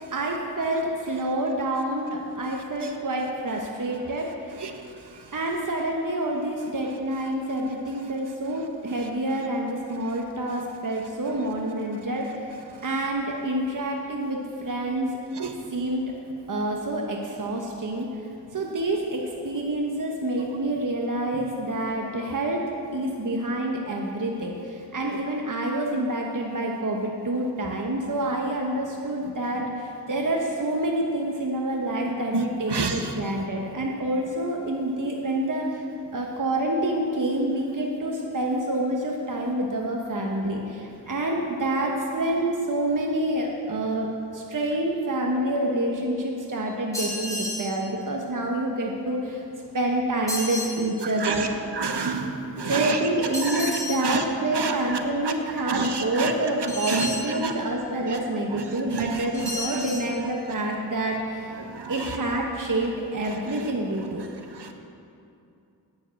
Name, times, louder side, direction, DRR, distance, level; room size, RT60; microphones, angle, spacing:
voice 1, 0.1-4.6 5.3-12.5 12.8-15.2 15.7-16.0 16.5-18.1 18.5-22.6 22.9-35.8 36.1-49.4 49.7-51.5 52.6-61.5 61.9-64.3, right 1 dB, 50° right, 0 dB, 1.1 m, -27 dB
sound 1, 46.9-47.7 50.3-50.8 53.3-54.0 56.7-57.3 59.3-60.1, left 1 dB, 10° left, 2.8 m, -31 dB
voice 2, 51.8-52.2 52.6-53.0 54.0-54.2 54.6-54.7 55.7-56.3 56.9-57.1 57.4-57.5 58.9-59.1 61.8-61.9, right 5 dB, 75° right, 5 dB, 1.0 m, -27 dB
9.3 x 7.0 x 7.6 m, 2.6 s
wide cardioid pair, 55°, 40 cm